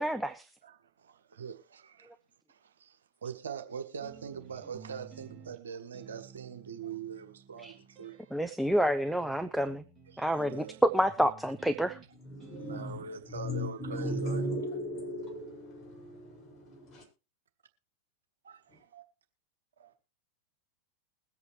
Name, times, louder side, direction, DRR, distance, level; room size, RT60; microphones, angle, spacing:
voice 1, 0.0-0.5 7.6-7.7 8.3-9.8 10.2-12.0, equal, ahead, 0.7 m, -28 dB
voice 2, 0.6-2.2 2.5-8.3 10.1-10.8 12.6-14.5 18.4-19.0 19.8-19.9, right 6 dB, 65° right, 1.5 m, -43 dB
sound 1, 4.0-13.2, right 6 dB, 20° right, 3.9 m, -54 dB
voice 3, 12.2-13.0 13.3-17.0 18.7-18.8, equal, 25° left, 7.7 m, -37 dB
21.5 x 8.2 x 3.2 m
figure-of-eight pair, 90°, 0 cm